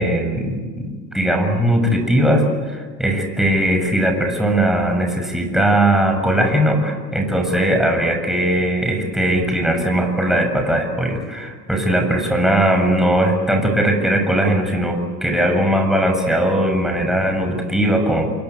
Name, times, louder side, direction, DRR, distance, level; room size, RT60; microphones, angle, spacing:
voice 1, 0.0-18.3, right 1 dB, ahead, 3 dB, 7.0 m, -19 dB
28.5 x 23.0 x 8.5 m, 1.5 s
hypercardioid pair, 80°, 50 cm